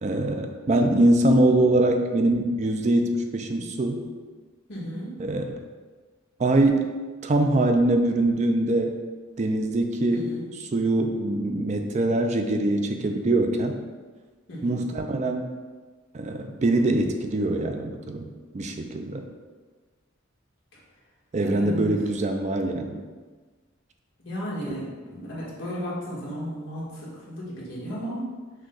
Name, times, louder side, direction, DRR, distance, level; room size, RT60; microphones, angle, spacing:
voice 1, 0.0-4.1 5.2-5.6 6.4-6.9 7.2-8.9 9.4-13.8 14.6-15.5 16.1-18.3 18.5-19.2 21.3-23.0, right 1 dB, 35° right, 5 dB, 0.4 m, -23 dB
voice 2, 4.7-5.1 10.1-10.4 14.5-14.8 21.4-21.9 24.2-28.3, equal, 65° left, -6 dB, 1.5 m, -34 dB
6.2 x 2.2 x 3.8 m, 1.4 s
head